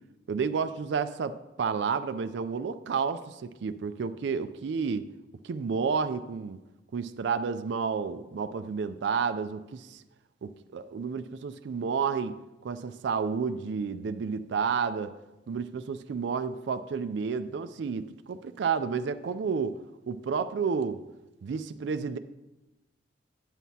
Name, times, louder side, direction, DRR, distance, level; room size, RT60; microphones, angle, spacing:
voice 1, 0.3-5.1 5.4-6.6 6.9-10.0 10.4-12.4 12.6-15.1 15.5-19.7 20.1-21.0 21.4-22.2, right 5 dB, 65° right, 11 dB, 0.4 m, -31 dB
9.2 x 9.0 x 2.8 m, 1.0 s
head